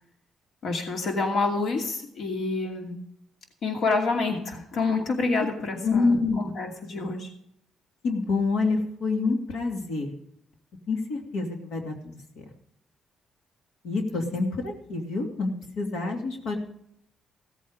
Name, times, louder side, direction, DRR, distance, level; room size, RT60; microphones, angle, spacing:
voice 1, 0.6-3.0 3.6-7.3, left 3 dB, 70° left, 2 dB, 2.5 m, -28 dB
voice 2, 5.8-6.5 8.0-10.1 10.9-12.4 13.8-16.6, left 3 dB, 90° left, 2 dB, 2.6 m, -27 dB
16.5 x 8.5 x 5.1 m, 0.70 s
cardioid pair, 90°, 0 cm